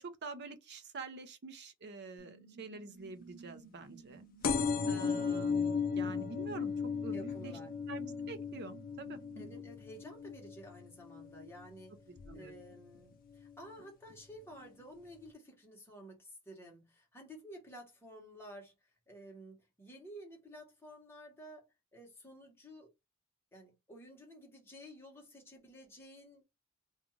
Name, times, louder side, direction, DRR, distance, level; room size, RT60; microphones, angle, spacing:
voice 1, 0.0-4.2 4.9-6.7 7.0-7.6 7.9-9.6 12.3-12.5, right 3 dB, 50° right, 0.5 m, -46 dB
sound 1, 2.2-9.5, right 6 dB, 90° right, 1.1 m, -56 dB
sound 2, 4.4-11.7 12.2-12.6 13.5-13.6 13.8-13.9 14.1-14.2, left 5 dB, 40° left, 0.3 m, -36 dB
voice 2, 7.1-7.7 9.4-11.9 12.3-18.7 19.1-22.9 23.5-26.4, equal, 10° left, 1.0 m, -52 dB
2.5 x 2.3 x 3.0 m
head